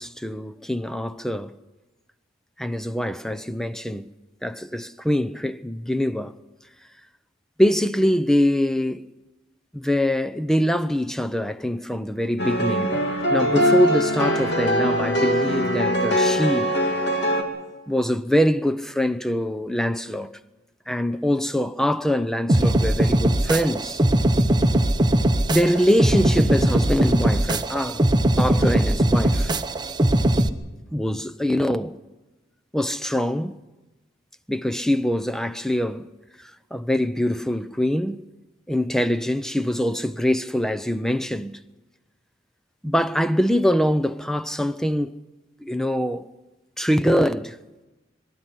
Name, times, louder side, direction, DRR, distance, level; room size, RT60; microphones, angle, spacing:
voice 1, 0.0-1.5 2.6-4.1 4.4-6.3 7.6-9.1 9.7-13.0 13.3-16.7 17.9-20.4 20.9-24.0 25.5-28.0 28.4-29.5 30.9-32.0 32.7-33.6 34.5-36.1 36.7-38.2 38.7-41.6 42.8-45.1 45.6-46.3 46.8-47.6, equal, 5° left, 0.6 m, -23 dB
sound 1, 12.4-17.4, equal, 60° left, 2.8 m, -22 dB
sound 2, 22.5-30.5, right 1 dB, 25° right, 1.0 m, -20 dB
23.5 x 12.5 x 9.9 m
head